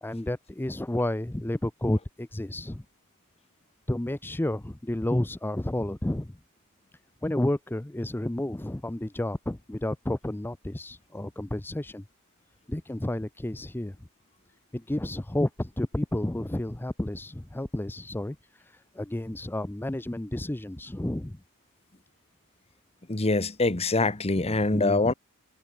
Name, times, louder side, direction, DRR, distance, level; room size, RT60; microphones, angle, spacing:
voice 1, 0.0-2.8 3.9-6.4 7.2-12.0 12.7-14.1 14.7-21.4 24.4-25.1, left 1 dB, 10° left, 0.5 m, -31 dB
voice 2, 23.1-25.1, left 3 dB, 30° left, 1.2 m, -24 dB
head